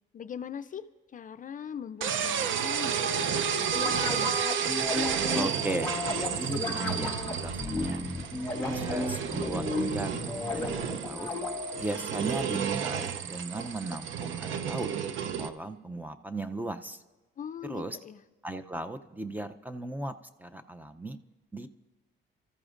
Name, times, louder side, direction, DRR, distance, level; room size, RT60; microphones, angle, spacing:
voice 1, 0.1-0.8 1.1-3.9 17.4-18.2, left 8 dB, 40° left, 11 dB, 0.4 m, -41 dB
sound 1, 2.0-15.5, right 7 dB, 75° right, 0.6 m, -32 dB
sound 2, 3.7-11.8, left 3 dB, 10° left, 2.1 m, -34 dB
voice 2, 5.3-8.1 8.6-11.3 11.8-14.9 15.4-17.0 17.6-18.0 18.4-21.2 21.5-21.7, right 2 dB, 10° right, 9 dB, 0.5 m, -37 dB
sound 3, 8.0-9.2 11.4-13.0, right 1 dB, 50° right, 6.4 m, -42 dB
28.0 x 14.0 x 2.5 m, 1.2 s
cardioid pair, 90°, 20 cm